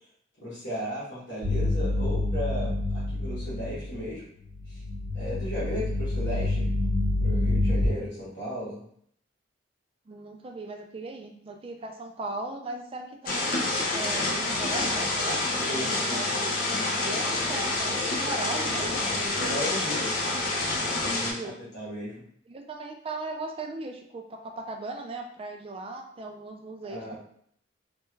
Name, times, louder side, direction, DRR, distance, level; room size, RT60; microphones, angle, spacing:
voice 1, 0.4-4.2 4.7-4.8 5.1-6.7 7.2-8.8 15.7-16.2 19.1-20.1 21.0-21.5 21.7-22.2 26.9-27.2, equal, 70° left, -9 dB, 1.4 m, -35 dB
sound 1, 1.4-4.1 4.4-7.9, left 2 dB, 80° right, 1.0 m, -27 dB
voice 2, 10.1-15.4 15.7-16.6 17.0-19.2 21.2-21.6 22.5-27.2, right 2 dB, 30° right, 3 dB, 0.3 m, -38 dB
sound 2, 13.3-21.3, left 2 dB, 50° left, 0.6 m, -28 dB
3.3 x 2.2 x 3.1 m, 0.66 s
head